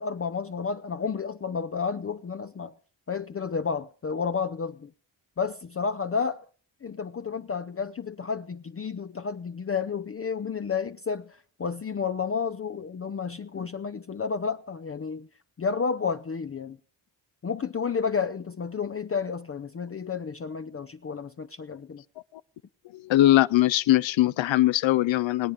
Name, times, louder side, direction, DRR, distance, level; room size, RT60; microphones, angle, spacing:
voice 1, 0.0-2.7 3.1-4.9 5.4-6.5 6.8-15.3 15.6-16.8 17.4-22.0, left 5 dB, 30° left, 0.5 m, -31 dB
voice 2, 22.9-25.5, left 14 dB, 70° left, 0.6 m, -21 dB
20.5 x 8.6 x 5.1 m
supercardioid pair, 45°, 47 cm